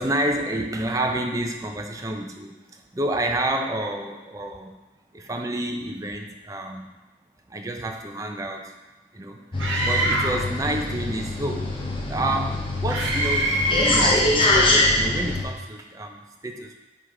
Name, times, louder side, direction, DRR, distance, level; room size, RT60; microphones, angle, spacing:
voice 1, 0.0-4.8 5.1-6.9 7.5-8.8 9.1-11.8 12.1-16.7, right 1 dB, 15° right, 3 dB, 0.5 m, -29 dB
sound 1, 9.5-15.4, left 2 dB, 25° left, 0.9 m, -23 dB
Screaming, 9.6-10.5 12.9-14.2, right 1 dB, 85° right, 1.1 m, -24 dB
9.3 x 3.4 x 3.7 m, 1.2 s
head